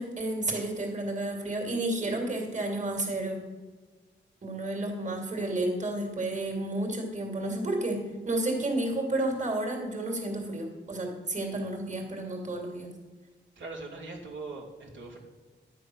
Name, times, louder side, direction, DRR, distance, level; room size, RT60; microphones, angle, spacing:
voice 1, 0.0-3.5 4.4-12.9, right 1 dB, 40° right, 0 dB, 2.8 m, -31 dB
voice 2, 13.6-15.2, right 3 dB, 90° right, -4 dB, 2.8 m, -41 dB
11.0 x 8.1 x 6.3 m, 1.3 s
wide cardioid pair, 90°, 19 cm